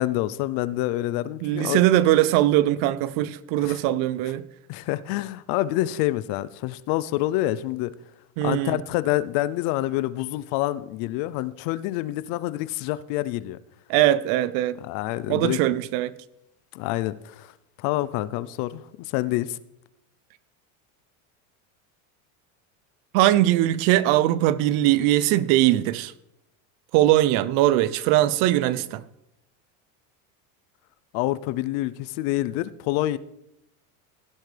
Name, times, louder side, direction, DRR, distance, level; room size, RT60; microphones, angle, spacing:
voice 1, 0.0-1.8 3.6-3.8 4.7-7.9 8.4-13.6 14.8-15.6 16.7-17.5 17.8-18.8 19.1-19.6 31.1-33.2, left 15 dB, 55° left, 0.6 m, -27 dB
voice 2, 1.4-4.5 8.4-8.8 13.9-14.8 15.3-16.1 23.1-26.1 26.9-29.0, right 14 dB, 55° right, 0.6 m, -21 dB
16.0 x 8.0 x 3.4 m
supercardioid pair, 135°, 41 cm